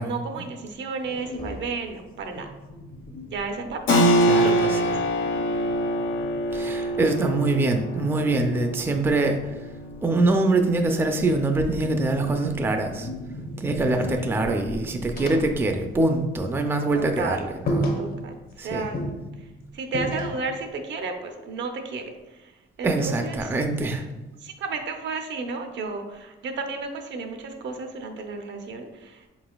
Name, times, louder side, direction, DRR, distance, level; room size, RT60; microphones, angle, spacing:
voice 1, 0.0-2.5 3.3-4.0 4.4-5.0 13.8-14.0 16.9-17.5 18.0-19.0 19.4-23.6 24.4-29.3, right 4 dB, 65° right, 5 dB, 0.6 m, -33 dB
sound 1, 1.0-4.1 4.5-7.4 8.7-10.8 11.2-16.5 16.7-16.9 17.3-17.4 17.7-18.6 18.9-20.6, equal, 50° left, 0.7 m, -35 dB
Keyboard (musical), 3.9-14.2, equal, 85° left, 0.5 m, -26 dB
voice 2, 4.3-4.8 6.5-9.4 10.0-13.1 13.6-17.4 17.7-17.9 18.6-18.9 22.8-24.0, right 2 dB, 10° right, 5 dB, 0.4 m, -24 dB
4.4 x 3.9 x 2.3 m, 1.1 s
cardioid pair, 90°, 20 cm